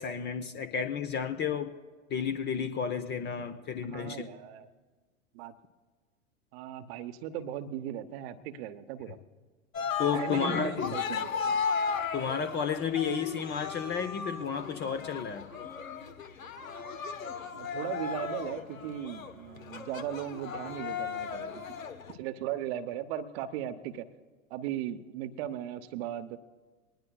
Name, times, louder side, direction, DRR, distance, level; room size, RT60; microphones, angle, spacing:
voice 1, 0.0-1.7 2.1-4.2 10.0-11.0 12.1-15.5, left 7 dB, 25° left, 9 dB, 0.8 m, -32 dB
voice 2, 3.9-4.7 5.3-5.5 6.5-9.2 10.1-11.6 17.5-21.6 22.1-24.1 24.5-26.4, right 11 dB, 50° right, 9 dB, 0.9 m, -37 dB
Cheering, 9.7-22.1, left 6 dB, 80° left, 1.2 m, -36 dB
22.0 x 19.5 x 2.3 m, 1.4 s
figure-of-eight pair, 95°, 40 cm